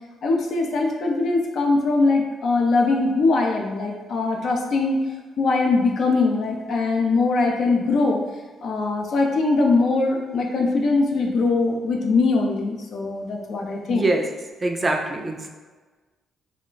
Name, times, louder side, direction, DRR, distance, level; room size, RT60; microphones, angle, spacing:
voice 1, 0.2-5.0 5.4-8.2 8.6-14.1, left 3 dB, 60° left, 1 dB, 0.5 m, -21 dB
voice 2, 13.9-14.3 14.6-15.5, right 2 dB, 25° right, 2 dB, 0.4 m, -23 dB
2.3 x 2.2 x 3.8 m, 1.3 s
cardioid pair, 90°, 0 cm